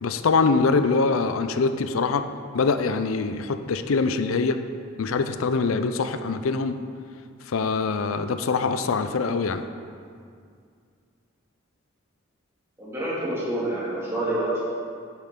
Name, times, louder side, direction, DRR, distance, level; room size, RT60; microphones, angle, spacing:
voice 1, 0.0-2.2 2.5-4.6 5.0-6.8 7.5-9.6, left 4 dB, 85° left, 10 dB, 0.5 m, -23 dB
voice 2, 12.8-14.6, right 1 dB, 15° right, -8 dB, 2.3 m, -28 dB
8.8 x 7.6 x 3.8 m, 2.2 s
head